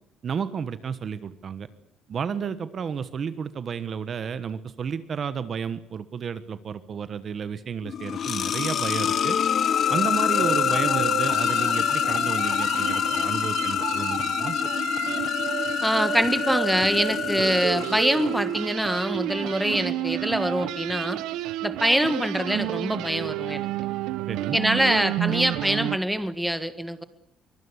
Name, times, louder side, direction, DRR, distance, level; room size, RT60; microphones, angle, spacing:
voice 1, 0.2-1.7 2.1-9.4 9.9-14.6 24.3-24.6, right 7 dB, 35° right, 13 dB, 1.2 m, -32 dB
sound 1, 7.8-18.6, left 8 dB, 40° left, 1.1 m, -26 dB
sound 2, 10.4-26.0, right 14 dB, 90° right, 1.1 m, -31 dB
voice 2, 15.8-21.2 21.6-23.7 24.5-27.0, equal, ahead, 11 dB, 1.6 m, -24 dB
24.0 x 23.0 x 8.2 m, 0.66 s
cardioid pair, 175°, 0 cm